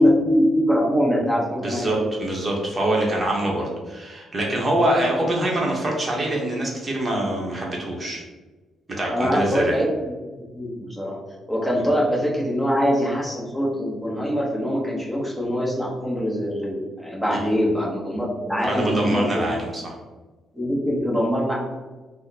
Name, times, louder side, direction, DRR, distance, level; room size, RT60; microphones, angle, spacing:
voice 1, 0.0-2.0 9.1-9.8 10.5-11.2 11.5-19.5 20.5-21.5, equal, ahead, -5 dB, 1.1 m, -23 dB
voice 2, 1.6-8.2 9.0-9.8 17.3-17.5 18.6-19.9, right 1 dB, 25° right, -2 dB, 1.0 m, -24 dB
3.0 x 2.1 x 4.0 m, 1.2 s
cardioid pair, 90°, 0 cm